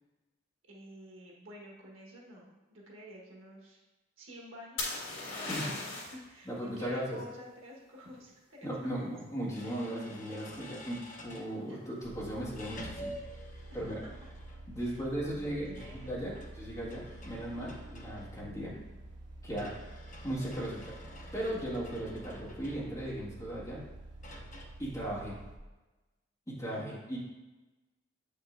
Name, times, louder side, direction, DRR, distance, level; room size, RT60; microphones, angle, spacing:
voice 1, 0.7-3.8 4.2-8.7 8.9-9.1 11.1-11.8 13.7-14.1 14.8-16.1 17.1-17.4 26.7-27.0, equal, 85° right, -2 dB, 1.4 m, -51 dB
sound 1, 4.8-6.2 9.9-10.4, left 2 dB, 65° left, 2.0 m, -37 dB
voice 2, 6.5-7.2 8.6-13.2 13.7-14.0 14.7-18.8 19.4-19.7 20.2-21.0 21.3-23.8 24.8-25.4 26.5-27.2, right 1 dB, 15° left, -8 dB, 1.8 m, -37 dB
sound 2, 9.5-11.5 12.5-14.8 15.6-18.7 19.6-23.2 24.2-24.6, left 1 dB, 40° left, 0.7 m, -49 dB
sound 3, 12.0-25.6, right 1 dB, 70° right, 1.2 m, -49 dB
7.8 x 5.3 x 2.6 m, 1.1 s
head